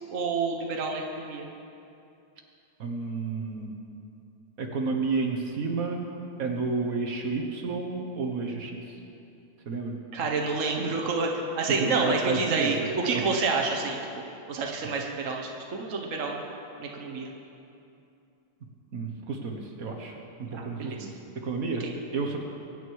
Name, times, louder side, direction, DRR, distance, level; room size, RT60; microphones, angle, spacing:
voice 1, 0.1-1.5 10.1-14.0 14.5-16.4 16.8-17.3 20.5-21.1 21.8-21.9, right 4 dB, 85° right, 1 dB, 0.7 m, -29 dB
voice 2, 2.8-3.8 4.6-6.0 6.4-8.8 9.6-9.9 11.8-12.7 13.1-13.2 18.9-21.9 22.1-22.4, right 4 dB, 55° right, 2 dB, 0.9 m, -31 dB
23.0 x 10.5 x 4.7 m, 2.7 s
omnidirectional pair, 3.3 m